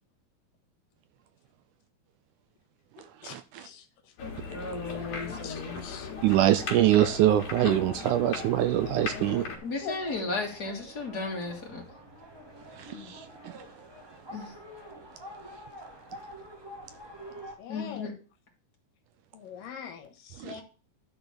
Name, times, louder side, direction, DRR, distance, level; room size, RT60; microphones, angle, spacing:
voice 1, 3.2-3.7 6.2-9.5 12.8-13.6 20.4-20.6, right 13 dB, 80° right, 1.9 m, -24 dB
sound 1, 4.2-9.6, left 5 dB, 60° left, 3.2 m, -38 dB
voice 2, 4.5-5.8 9.6-11.8 14.3-14.5 17.7-18.1, left 3 dB, 35° left, 2.3 m, -34 dB
voice 3, 5.4-6.1 9.8-9.9 12.9-13.1 17.6-18.1 19.3-20.6, left 7 dB, 80° left, 3.1 m, -42 dB
sound 2, 6.2-17.5, right 1 dB, 30° right, 0.4 m, -46 dB
11.5 x 4.1 x 6.9 m
omnidirectional pair, 3.9 m